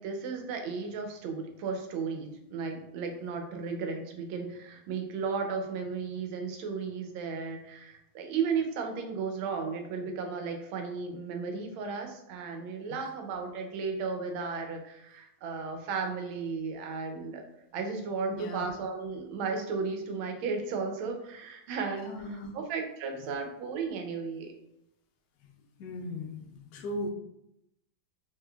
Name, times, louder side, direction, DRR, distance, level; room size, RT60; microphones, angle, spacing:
voice 1, 0.0-17.4 17.7-22.1 22.5-24.5, right 5 dB, 85° right, 4 dB, 1.4 m, -34 dB
voice 2, 18.3-18.7 22.0-22.5 23.3-23.4 25.4-27.1, left 1 dB, 70° left, 2 dB, 0.9 m, -39 dB
3.6 x 3.2 x 2.2 m, 0.82 s
omnidirectional pair, 2.2 m